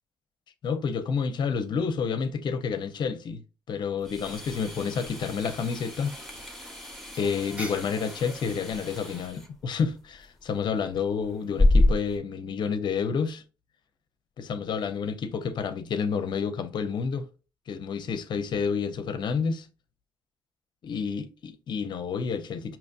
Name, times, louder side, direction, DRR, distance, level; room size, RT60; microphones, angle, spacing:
voice 1, 0.6-3.4 3.7-6.2 7.2-13.4 14.4-17.3 17.7-19.7 20.8-22.8, left 6 dB, 65° left, 0.7 m, -29 dB
sound 1, 4.0-12.2, left 2 dB, ahead, 1.3 m, -29 dB
sound 2, 4.2-9.3, right 1 dB, 15° right, 1.1 m, -45 dB
5.0 x 2.9 x 2.5 m
cardioid pair, 65°, 8 cm